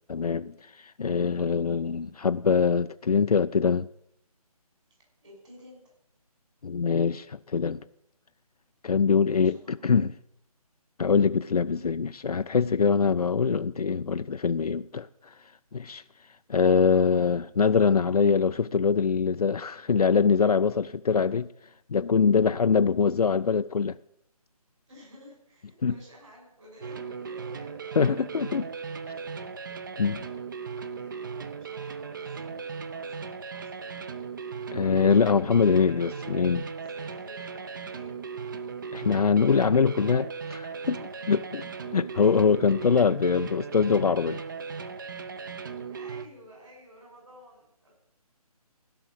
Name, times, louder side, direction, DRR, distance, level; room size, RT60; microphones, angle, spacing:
voice 1, 0.1-3.9 6.6-7.8 8.8-10.1 11.0-15.4 15.7-16.0 16.5-21.5 21.9-24.0 25.8-25.9 28.0-28.7 30.0-30.2 34.7-36.7 38.9-41.0 41.3-41.6 41.9-44.4, left 5 dB, 75° left, 0.4 m, -23 dB
voice 2, 5.2-5.9 9.3-9.9 11.6-11.8 24.9-28.2 30.2-30.4 30.8-34.0 36.8-38.3 40.9-41.7 45.4-47.9, equal, 50° right, 6.1 m, -53 dB
sound 1, 26.8-46.3, right 5 dB, 30° right, 0.7 m, -37 dB
15.5 x 5.9 x 8.6 m
figure-of-eight pair, 150°, 20 cm